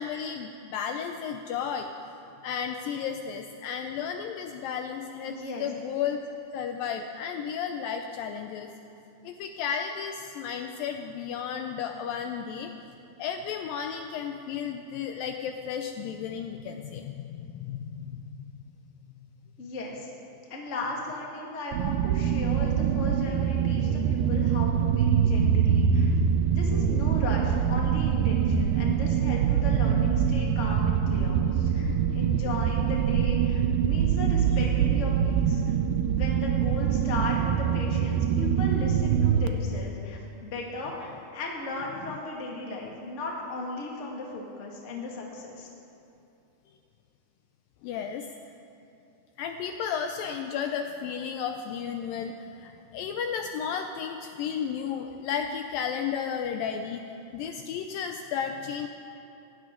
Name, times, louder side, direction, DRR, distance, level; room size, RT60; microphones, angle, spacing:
voice 1, 0.0-1.9 2.4-6.2 6.5-8.7 9.2-12.7 13.2-18.2 47.8-48.3 49.4-57.0 57.3-58.9, left 7 dB, 80° left, 5 dB, 2.1 m, -33 dB
voice 2, 5.2-5.7 19.6-20.1 20.5-26.1 26.4-35.7 36.0-45.7, left 2 dB, 30° left, -2 dB, 1.3 m, -36 dB
sound 1, 21.7-39.5, right 8 dB, 85° right, 2.1 m, -24 dB
19.0 x 16.5 x 3.8 m, 2.8 s
omnidirectional pair, 4.5 m